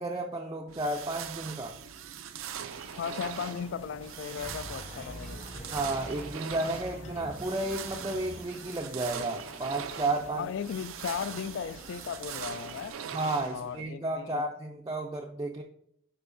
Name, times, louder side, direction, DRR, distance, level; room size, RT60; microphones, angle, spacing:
voice 1, 0.0-1.7 5.7-10.5 13.1-15.6, right 2 dB, 20° right, 0.4 m, -32 dB
sound 1, 0.7-13.8, right 8 dB, 90° right, 0.4 m, -42 dB
sound 2, 2.6-12.9, left 1 dB, 80° left, 1.6 m, -51 dB
voice 2, 3.0-5.4 10.3-12.9 13.5-14.4, left 7 dB, 65° left, 0.3 m, -36 dB
sound 3, 4.4-8.4, equal, 35° left, 1.3 m, -44 dB
9.5 x 4.5 x 2.6 m
head